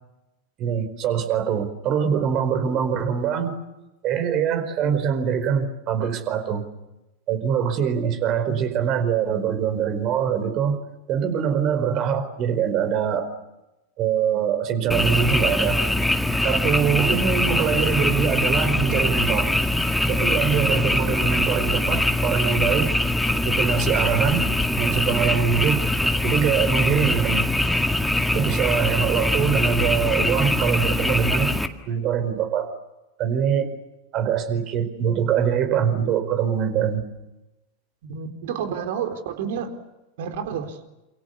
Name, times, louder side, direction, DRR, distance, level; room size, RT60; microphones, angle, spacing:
voice 1, 0.6-3.6 4.0-6.6 7.3-10.8 11.1-13.3 14.0-15.8 16.4-19.5 20.0-22.9 23.4-24.5 24.8-25.8 26.2-27.5 28.3-31.5 31.9-32.7 33.2-33.7 34.1-37.0, right 8 dB, 35° right, 10 dB, 4.7 m, -23 dB
Frog, 14.9-31.7, left 1 dB, 5° left, 2.0 m, -22 dB
voice 2, 38.0-39.8 40.2-40.8, right 7 dB, 55° right, 7 dB, 4.0 m, -30 dB
29.0 x 28.0 x 7.1 m, 0.98 s
figure-of-eight pair, 90°, 0 cm